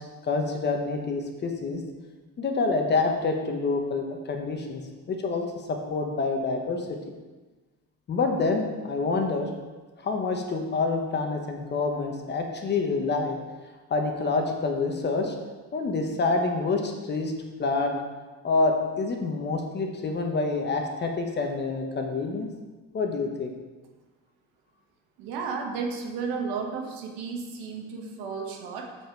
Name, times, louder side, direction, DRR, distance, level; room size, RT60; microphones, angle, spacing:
voice 1, 0.0-1.8 2.4-4.8 5.1-6.9 8.1-9.5 10.0-13.4 13.9-15.3 15.7-17.3 17.6-18.0 18.4-22.5 22.9-23.5, left 3 dB, 30° left, 3 dB, 0.9 m, -27 dB
voice 2, 25.2-29.0, right 5 dB, 80° right, 2 dB, 1.4 m, -33 dB
7.2 x 5.8 x 4.5 m, 1.3 s
cardioid pair, 150°, 36 cm